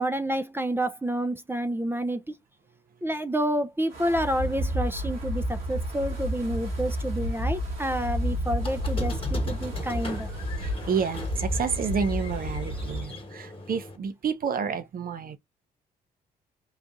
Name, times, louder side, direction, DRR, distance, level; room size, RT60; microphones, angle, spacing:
voice 1, 0.0-2.4 3.0-10.3, right 1 dB, 10° right, 0.5 m, -29 dB
Wind, 3.9-13.1, equal, 80° right, 1.7 m, -31 dB
Squeak, 8.6-14.0, left 2 dB, 25° left, 1.4 m, -39 dB
voice 2, 10.6-15.4, right 6 dB, 45° right, 0.8 m, -29 dB
3.9 x 2.4 x 2.5 m
hypercardioid pair, 50°, 20 cm